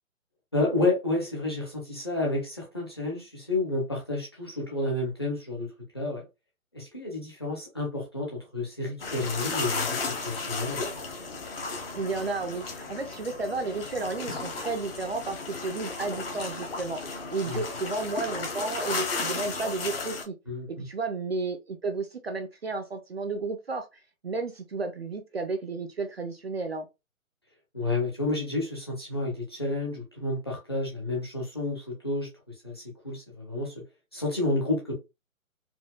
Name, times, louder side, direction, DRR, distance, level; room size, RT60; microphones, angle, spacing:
voice 1, 0.5-5.7 5.9-6.2 6.7-10.8 17.4-17.7 20.5-20.9 27.7-32.3 32.6-33.8 34.1-34.9, left 2 dB, 20° left, 0.6 m, -30 dB
sound 1, 9.0-20.2, left 4 dB, 40° left, 1.0 m, -34 dB
voice 2, 11.9-20.4 20.7-26.9, right 3 dB, 50° right, 0.4 m, -32 dB
4.3 x 2.2 x 2.3 m
hypercardioid pair, 165°, 42 cm